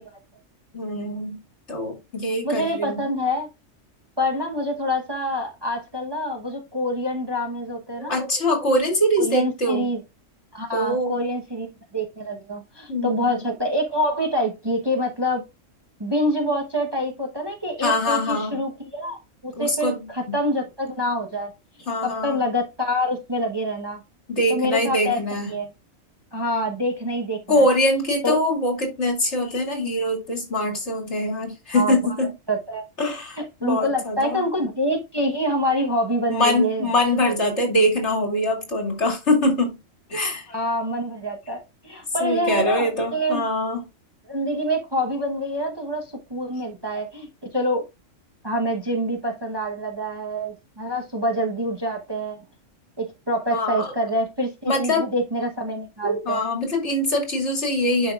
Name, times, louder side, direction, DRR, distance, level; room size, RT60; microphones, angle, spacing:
voice 1, 0.7-1.4 1.7-3.0 8.0-9.9 10.7-11.3 12.9-13.4 17.8-18.6 19.6-19.9 20.3-20.4 21.9-22.4 24.3-25.5 27.5-32.3 33.0-34.5 36.3-39.7 40.1-40.5 42.2-43.8 53.5-53.9 54.7-55.1 56.0-58.1, left 1 dB, 60° left, 2.9 m, -23 dB
voice 2, 2.4-3.5 4.2-8.1 9.2-10.0 10.5-11.7 11.9-15.4 16.0-21.5 22.0-24.0 24.5-25.2 25.5-25.7 26.3-27.6 28.2-28.4 31.7-32.0 32.5-32.9 33.6-36.9 40.5-43.4 44.3-47.3 47.5-47.9 48.4-52.4 53.0-56.4, equal, 20° right, 1.0 m, -26 dB
11.0 x 5.3 x 2.4 m
omnidirectional pair, 1.4 m